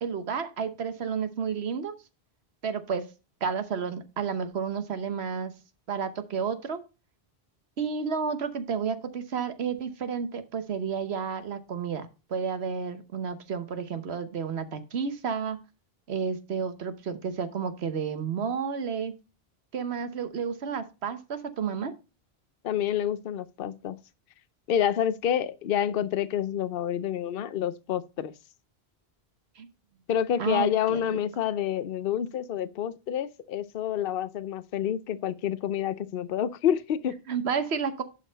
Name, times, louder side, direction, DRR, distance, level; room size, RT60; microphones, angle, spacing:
voice 1, 0.0-1.9 2.6-3.1 3.4-5.5 5.9-6.8 7.8-15.6 16.1-19.1 19.7-21.9 29.6-29.7 30.4-31.2 37.3-38.0, right 6 dB, 80° right, 1.2 m, -31 dB
voice 2, 22.6-24.0 24.7-28.3 30.1-37.2, left 9 dB, 65° left, 0.8 m, -28 dB
11.0 x 4.3 x 3.9 m
omnidirectional pair, 1.1 m